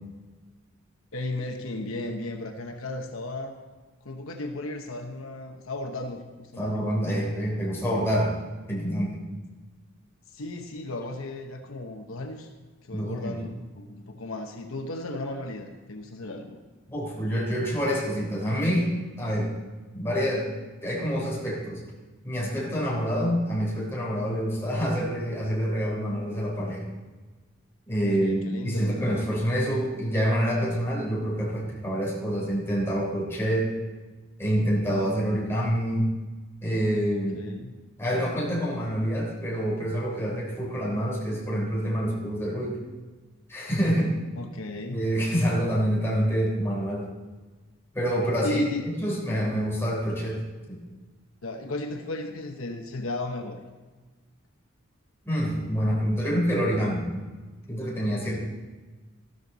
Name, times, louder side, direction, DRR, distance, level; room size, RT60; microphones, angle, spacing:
voice 1, 1.1-3.5 4.0-6.9 7.3-8.1 10.3-12.5 12.8-16.6 28.0-29.0 37.3-37.7 44.4-45.0 48.4-49.0 51.4-53.6, left 2 dB, 75° left, 4 dB, 1.0 m, -35 dB
voice 2, 6.6-8.3 8.7-9.2 12.9-13.4 16.9-19.5 19.9-21.8 22.2-26.9 27.9-33.7 34.4-36.1 36.6-37.4 38.0-42.8 43.5-44.2 44.9-47.1 47.9-50.4 50.7-50.8 55.3-57.1 57.7-58.4, equal, 10° left, -4 dB, 3.5 m, -27 dB
13.5 x 13.0 x 4.0 m, 1.3 s
head